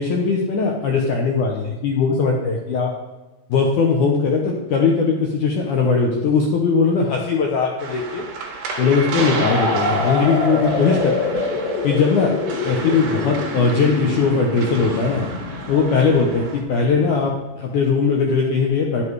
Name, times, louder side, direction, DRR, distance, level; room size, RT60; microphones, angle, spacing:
voice 1, 0.0-2.9 3.5-8.3 8.8-11.4 11.8-12.3 12.6-15.3 15.7-19.0, left 4 dB, 85° left, 0 dB, 1.7 m, -19 dB
sound 1, 7.8-16.6, right 3 dB, 50° right, 2.5 m, -30 dB
sound 2, 9.5-17.2, left 4 dB, 65° left, 2.8 m, -26 dB
12.0 x 8.1 x 4.7 m, 1.2 s
omnidirectional pair, 5.2 m